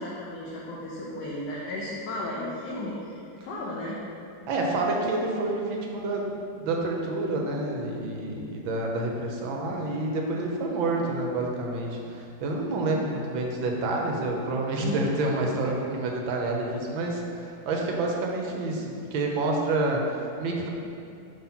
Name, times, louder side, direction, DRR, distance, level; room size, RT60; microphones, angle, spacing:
voice 1, 0.0-4.0 14.8-15.1 17.8-18.0, left 1 dB, 70° left, -5 dB, 1.3 m, -34 dB
voice 2, 4.5-20.7, right 2 dB, 80° right, 0 dB, 1.6 m, -28 dB
5.7 x 4.0 x 5.7 m, 2.5 s
omnidirectional pair, 2.1 m